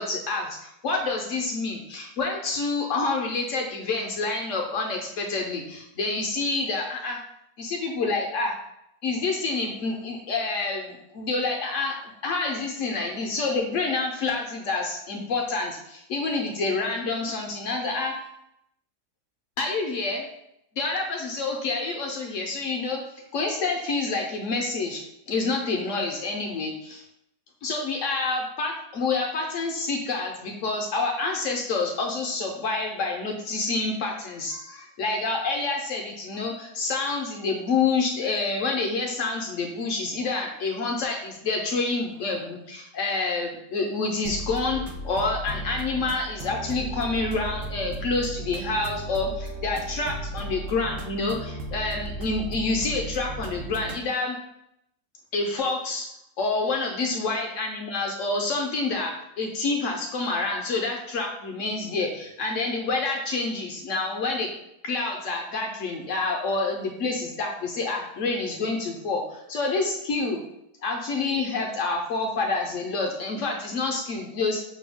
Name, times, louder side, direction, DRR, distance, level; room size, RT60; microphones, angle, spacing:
voice 1, 0.0-7.2 7.6-8.6 9.0-18.1 19.6-20.3 20.8-23.0 23.3-25.0 25.3-27.0 27.6-54.4 55.3-56.1 56.4-64.5 64.8-70.4 70.8-74.6, left 3 dB, 65° left, 1 dB, 0.8 m, -28 dB
sound 1, 44.3-54.0, right 1 dB, 70° right, 0.8 m, -35 dB
5.3 x 2.2 x 3.4 m, 0.80 s
omnidirectional pair, 1.7 m